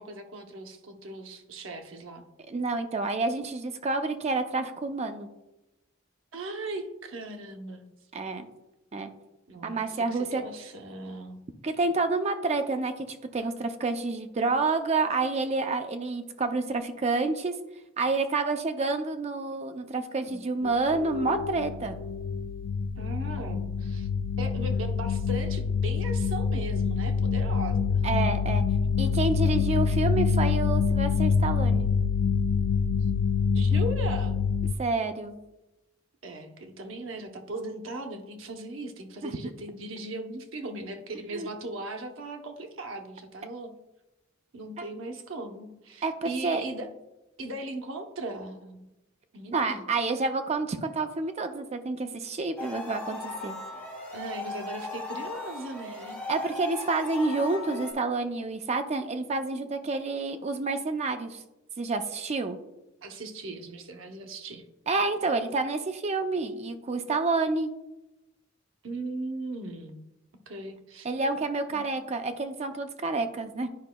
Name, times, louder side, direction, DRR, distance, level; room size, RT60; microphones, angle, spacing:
voice 1, 0.0-2.2 6.3-7.8 9.5-11.4 20.2-20.7 23.0-24.1 24.4-28.0 33.5-34.4 36.2-43.7 44.5-46.9 47.4-48.9 49.3-49.8 54.1-56.2 63.0-64.6 68.8-70.0 70.5-71.1 71.7-71.8, right 2 dB, 80° right, 5 dB, 0.8 m, -38 dB
voice 2, 2.5-5.3 8.1-8.5 8.9-9.1 9.6-10.4 11.6-17.5 18.0-22.0 28.0-28.6 29.0-31.9 34.8-35.3 39.2-39.3 41.3-41.5 46.0-46.6 49.5-53.6 56.3-61.4 61.8-62.6 64.9-67.7 71.0-73.7, right 3 dB, 35° right, 7 dB, 0.5 m, -29 dB
sound 1, 20.6-34.7, left 6 dB, 85° left, 0.3 m, -26 dB
sound 2, 52.6-57.9, left 3 dB, 10° left, 1.7 m, -38 dB
10.5 x 5.1 x 2.2 m, 0.96 s
head